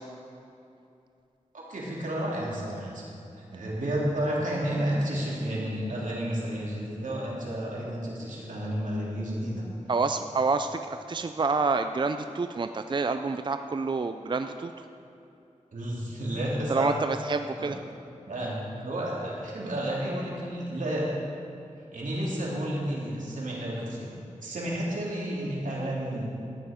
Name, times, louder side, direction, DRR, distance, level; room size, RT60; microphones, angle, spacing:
voice 1, 1.5-3.1 3.5-9.6 15.7-17.0 17.6-17.7 18.2-21.1 21.9-26.2, right 1 dB, 85° right, -5 dB, 2.9 m, -31 dB
voice 2, 9.9-14.7 16.7-17.8, right 4 dB, 40° right, 8 dB, 0.4 m, -28 dB
14.0 x 9.5 x 5.0 m, 2.7 s
wide cardioid pair, 65°, 13 cm